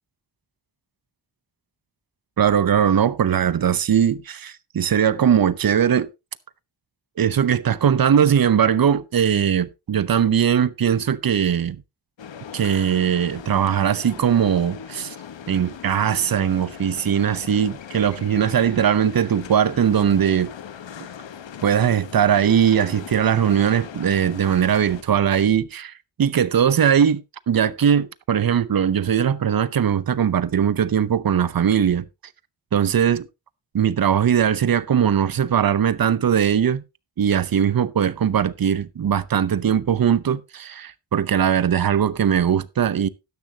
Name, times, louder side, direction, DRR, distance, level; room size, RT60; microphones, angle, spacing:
voice 1, 2.4-6.1 7.2-11.8 12.5-15.1 15.5-20.5 21.6-25.9 26.2-27.2 27.5-32.1 32.7-33.3 33.7-36.8 37.2-43.1, right 8 dB, 50° right, 0.7 m, -20 dB
sound 1, 12.2-25.0, left 8 dB, 80° left, 1.1 m, -39 dB
12.5 x 10.5 x 2.8 m
wide cardioid pair, 115°, 44 cm